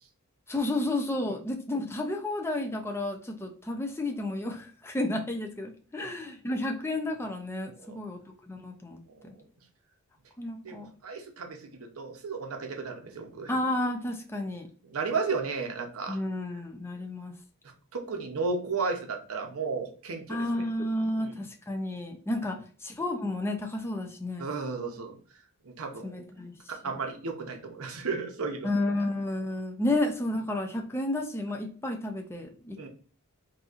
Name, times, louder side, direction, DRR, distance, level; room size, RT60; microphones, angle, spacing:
voice 1, 0.5-9.3 10.4-10.9 13.5-14.7 16.1-17.3 20.3-24.5 26.0-26.6 26.8-27.0 28.6-32.9, left 1 dB, 10° left, 3 dB, 0.5 m, -32 dB
voice 2, 9.1-9.4 10.6-13.5 14.8-16.2 17.9-20.6 21.1-21.4 24.4-25.2 25.6-26.2 26.7-28.7 32.8-32.9, right 4 dB, 70° right, 4 dB, 0.7 m, -34 dB
4.0 x 2.7 x 2.4 m, 0.42 s
head